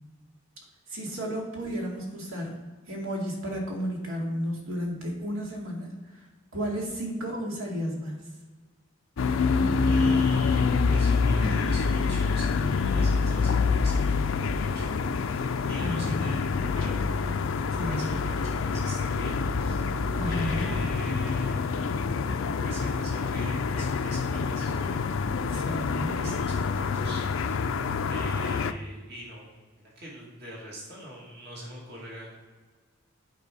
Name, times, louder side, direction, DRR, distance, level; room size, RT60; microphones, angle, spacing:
voice 1, 0.9-2.5 2.9-6.2 6.5-8.3 11.4-11.5 15.8-16.2 17.7-18.2 20.1-20.7 25.5-26.2, equal, 80° right, -1 dB, 2.3 m, -33 dB
sound 1, 9.2-28.7, left 4 dB, 65° left, 0.4 m, -26 dB
voice 2, 9.8-16.9 17.8-22.1 22.5-25.0 25.6-27.7 28.1-29.5 29.8-32.3, right 1 dB, 55° right, -4 dB, 2.5 m, -43 dB
8.7 x 4.9 x 5.4 m, 1.4 s
head